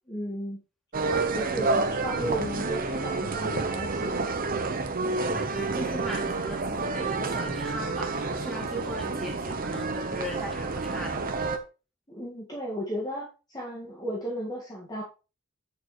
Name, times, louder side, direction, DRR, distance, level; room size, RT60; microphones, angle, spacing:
voice 1, 0.1-0.6 1.3-4.3 12.1-15.0, equal, 20° left, -3 dB, 1.8 m, -35 dB
sound 1, 0.9-11.6, right 3 dB, 40° right, 0.9 m, -29 dB
voice 2, 5.0-11.2, equal, ahead, -2 dB, 2.6 m, -38 dB
8.6 x 6.8 x 3.2 m, 0.31 s
head